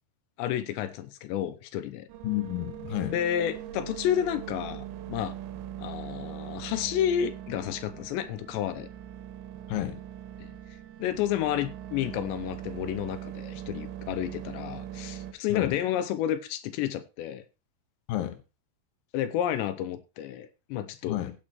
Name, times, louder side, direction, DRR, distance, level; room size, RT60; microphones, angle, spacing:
voice 1, 0.4-2.1 3.1-5.4 5.8-8.9 10.4-10.5 11.0-17.4 19.1-21.2, left 10 dB, 85° left, 3.0 m, -31 dB
sound 1, 2.1-15.3, right 11 dB, 90° right, 3.2 m, -41 dB
voice 2, 2.2-3.2 9.7-10.0 15.5-15.8 18.1-18.4 21.1-21.3, left 14 dB, 65° left, 2.8 m, -30 dB
16.5 x 8.9 x 3.1 m
omnidirectional pair, 5.0 m